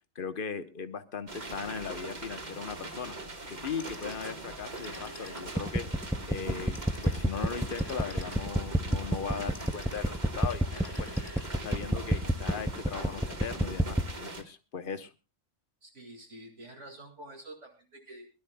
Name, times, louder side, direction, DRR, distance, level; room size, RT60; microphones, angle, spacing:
voice 1, 0.1-3.1 3.5-5.9 6.2-11.1 11.6-15.1, left 6 dB, 50° left, 9 dB, 1.3 m, -38 dB
sound 1, 1.3-14.4, right 2 dB, 40° right, 1.7 m, -42 dB
Telephone, 3.6-5.8 6.6-8.7 9.4-10.2 10.6-11.8, equal, 25° left, 1.8 m, -49 dB
sound 2, 5.6-14.1, right 1 dB, 5° right, 0.4 m, -27 dB
voice 2, 15.8-18.4, right 1 dB, 80° right, 0 dB, 2.6 m, -48 dB
24.0 x 12.0 x 2.3 m, 0.30 s
omnidirectional pair, 1.2 m